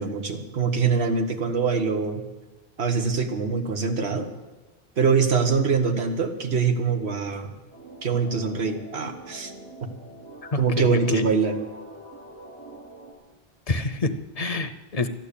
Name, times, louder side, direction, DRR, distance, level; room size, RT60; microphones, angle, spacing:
voice 1, 0.0-2.2 2.8-4.3 5.0-7.5 8.0-9.5 10.6-11.5, right 5 dB, 90° right, 5 dB, 1.6 m, -24 dB
sound 1, 7.7-13.1, right 1 dB, 75° right, 2.7 m, -45 dB
voice 2, 10.4-11.3 13.7-15.1, left 3 dB, 40° left, 11 dB, 0.8 m, -27 dB
13.5 x 10.5 x 8.4 m, 1.2 s
omnidirectional pair, 1.1 m